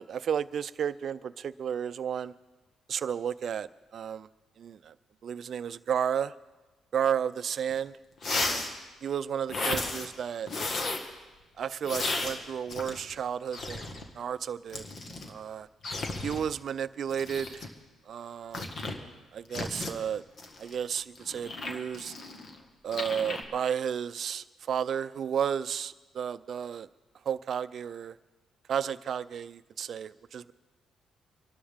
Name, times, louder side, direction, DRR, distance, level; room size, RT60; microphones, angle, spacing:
voice 1, 0.0-2.3 2.9-4.3 4.6-4.9 5.2-6.3 6.9-8.0 8.3-8.7 9.0-10.5 11.6-13.9 14.2-14.8 15.3-15.7 16.2-17.7 18.1-18.7 19.3-20.2 20.6-22.1 22.8-26.9 27.3-28.2 28.7-30.5, right 8 dB, 60° right, 15 dB, 0.5 m, -32 dB
sound 1, 7.7-7.8 8.2-8.8 9.5-10.1 10.5-11.1 11.8-13.2 13.5-14.0 14.7-15.3 15.8-16.4 17.1-17.7 18.5-19.0 19.5-19.9 20.4-22.6 22.9-23.4, left 2 dB, 50° left, 1.8 m, -34 dB
24.5 x 12.0 x 3.6 m, 1.2 s
cardioid pair, 90°, 0 cm